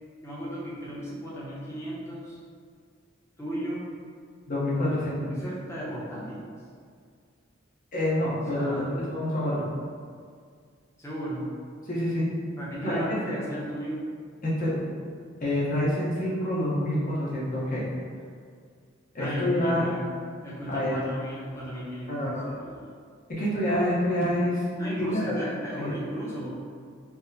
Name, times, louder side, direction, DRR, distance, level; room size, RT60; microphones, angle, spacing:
voice 1, 0.2-2.4 3.4-3.9 5.3-6.4 8.5-8.9 11.0-11.4 12.6-14.1 19.2-20.1 20.4-22.2 22.6-22.9 24.8-26.5, right 1 dB, 15° left, -8 dB, 0.8 m, -35 dB
voice 2, 4.5-5.3 7.9-9.7 11.8-12.3 12.8-13.0 14.4-14.8 15.4-17.8 19.1-19.9 20.7-21.0 22.1-22.5 23.4-24.6 25.0-25.4 25.8-25.9, left 1 dB, 45° left, -7 dB, 0.9 m, -27 dB
4.6 x 2.1 x 2.7 m, 2.1 s
head